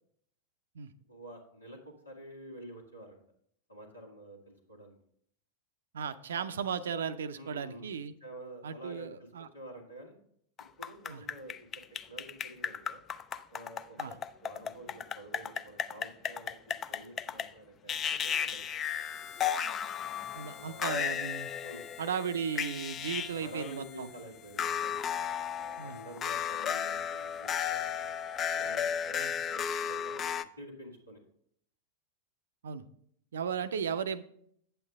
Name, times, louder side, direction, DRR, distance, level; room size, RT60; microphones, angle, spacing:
voice 1, 1.1-3.2 3.7-5.0 7.4-7.9 8.2-9.3 9.5-10.2 10.8-11.8 12.1-13.0 13.5-14.1 14.4-19.2 20.5-21.0 21.6-21.9 23.2-25.0 25.5-28.1 28.5-31.2, right 1 dB, 85° left, -2 dB, 1.7 m, -49 dB
voice 2, 5.9-8.1 8.6-9.5 11.1-11.3 14.0-14.2 20.3-21.5 22.0-24.1 25.8-26.0 29.2-29.3 32.6-32.9 33.3-34.2, right 7 dB, 65° right, 12 dB, 0.5 m, -36 dB
sound 1, 10.6-17.5 17.9-23.3 23.6-23.7 24.6-30.4, left 8 dB, 25° left, 0.4 m, -34 dB
Harmonica, 18.8-29.1, left 9 dB, 50° left, 0.8 m, -52 dB
8.7 x 8.0 x 3.6 m, 0.66 s
figure-of-eight pair, 90°, 0 cm